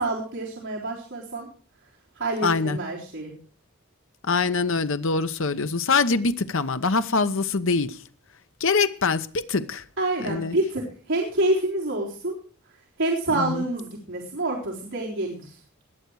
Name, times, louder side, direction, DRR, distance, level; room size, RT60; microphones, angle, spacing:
voice 1, 0.0-1.5 2.2-3.3 10.0-12.4 13.0-15.6, right 2 dB, 65° right, 3.9 m, -27 dB
voice 2, 2.4-2.8 4.2-8.0 8.6-9.8 10.2-10.5 13.3-13.6, left 4 dB, 65° left, 1.0 m, -24 dB
21.0 x 8.3 x 4.8 m
head